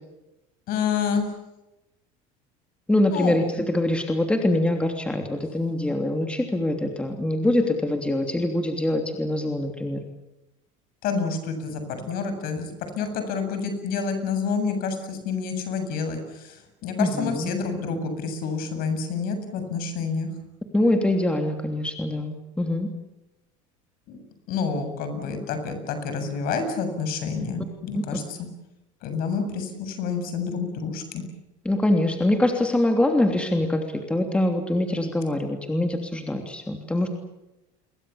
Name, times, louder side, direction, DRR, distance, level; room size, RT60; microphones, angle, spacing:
voice 1, 0.7-1.3 3.1-3.3 11.0-20.3 24.1-28.4 29.0-31.2, left 5 dB, 60° left, 8 dB, 7.7 m, -28 dB
voice 2, 2.9-10.0 17.0-17.5 20.7-22.9 27.9-28.0 31.6-37.1, left 1 dB, 5° left, 4 dB, 3.0 m, -24 dB
29.5 x 23.0 x 7.2 m, 0.96 s
cardioid pair, 130°, 17 cm